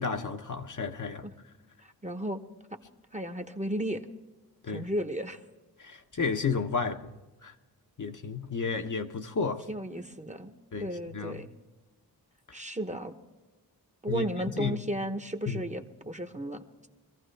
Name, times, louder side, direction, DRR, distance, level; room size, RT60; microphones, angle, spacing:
voice 1, 0.0-1.3 4.6-4.9 5.8-7.5 8.0-9.7 10.7-10.9 11.1-11.4 14.1-14.2 14.6-14.8 15.5-15.6, left 5 dB, 50° left, 0.9 m, -32 dB
voice 2, 1.8-2.4 3.1-4.0 4.7-5.4 9.7-10.5 10.8-11.5 12.5-13.1 14.0-16.6, right 1 dB, 20° right, 0.9 m, -34 dB
24.0 x 15.0 x 3.3 m
wide cardioid pair, 95°, 39 cm